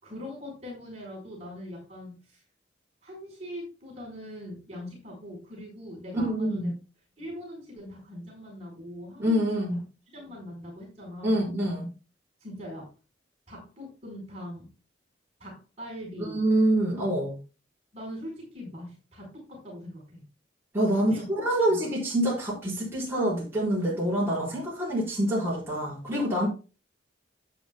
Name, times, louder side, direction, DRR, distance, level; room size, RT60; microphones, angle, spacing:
voice 1, 0.0-2.4 3.0-6.7 7.2-9.8 10.1-11.5 12.4-12.9 13.5-14.7 15.4-16.4 17.9-20.2 20.9-21.3 21.7-21.9 26.1-26.4, left 1 dB, 35° right, 4.6 m, -41 dB
voice 2, 6.1-6.7 9.2-9.8 11.2-11.9 16.3-17.3 20.7-26.5, right 1 dB, 10° right, 5.0 m, -26 dB
11.5 x 8.8 x 2.3 m
head